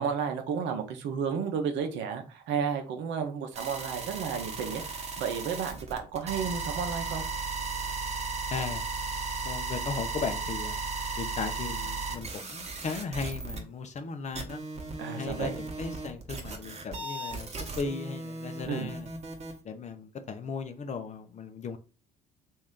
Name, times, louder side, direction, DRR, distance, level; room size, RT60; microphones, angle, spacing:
voice 1, 0.0-7.2 15.0-15.5 18.6-18.9, right 6 dB, 60° right, 0.8 m, -32 dB
sound 1, 3.5-13.6 14.0-14.1 14.3-19.5, right 3 dB, 30° right, 1.1 m, -36 dB
voice 2, 8.5-8.8 9.4-10.8 11.2-14.6 15.0-19.1 19.6-21.8, left 5 dB, 35° left, 0.7 m, -36 dB
3.1 x 2.7 x 3.7 m
hypercardioid pair, 60°, 21 cm